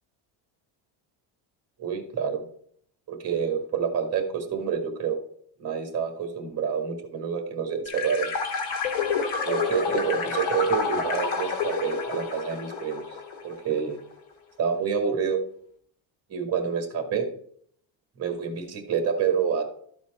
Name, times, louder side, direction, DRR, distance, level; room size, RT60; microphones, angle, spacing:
voice 1, 1.8-2.4 3.1-5.2 5.6-8.3 9.4-13.0 13.4-14.0 14.6-15.4 16.3-17.3 18.2-19.7, right 7 dB, 30° right, 5 dB, 1.6 m, -28 dB
sound 1, 7.9-13.6, left 5 dB, 75° left, 1.8 m, -29 dB
12.5 x 4.4 x 4.2 m, 0.62 s
cardioid pair, 175°, 48 cm